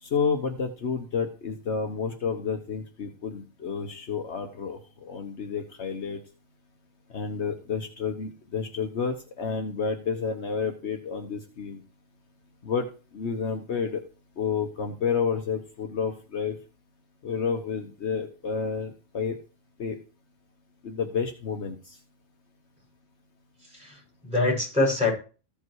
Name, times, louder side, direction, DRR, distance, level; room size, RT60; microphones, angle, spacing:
voice 1, 0.0-6.2 7.1-11.8 12.6-12.9 13.1-14.0 14.4-16.6 17.2-19.4 19.8-20.0 20.8-22.0, left 6 dB, 65° left, 4 dB, 1.3 m, -30 dB
voice 2, 23.6-25.1, left 2 dB, 5° right, -2 dB, 6.5 m, -25 dB
15.0 x 5.4 x 4.7 m, 0.36 s
omnidirectional pair, 1.3 m